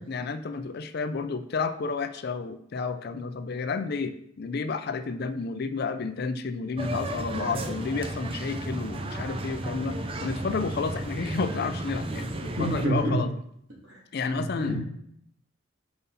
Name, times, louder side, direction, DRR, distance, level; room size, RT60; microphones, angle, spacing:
voice 1, 0.1-13.3 14.1-14.8, left 4 dB, 50° left, 10 dB, 0.4 m, -31 dB
sound 1, 6.8-12.9, right 1 dB, 25° right, 0.5 m, -33 dB
voice 2, 12.6-13.1 14.3-14.8, right 1 dB, 65° right, -4 dB, 2.5 m, -27 dB
5.5 x 5.5 x 4.1 m, 0.71 s
head